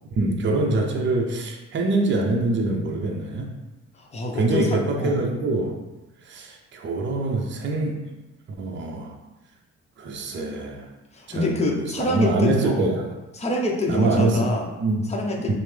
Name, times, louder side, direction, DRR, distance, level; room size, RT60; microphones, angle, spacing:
voice 1, 0.2-3.5 4.3-5.8 6.3-8.0 8.6-9.1 10.0-10.9 11.3-13.0 13.9-14.5 14.8-15.0 15.4-15.5, right 2 dB, 40° right, 1 dB, 0.6 m, -24 dB
voice 2, 3.9-5.2 11.1-12.8 13.3-14.7 15.1-15.5, left 2 dB, 20° left, -1 dB, 0.7 m, -26 dB
5.3 x 2.0 x 3.3 m, 1.1 s
cardioid pair, 90°, 30 cm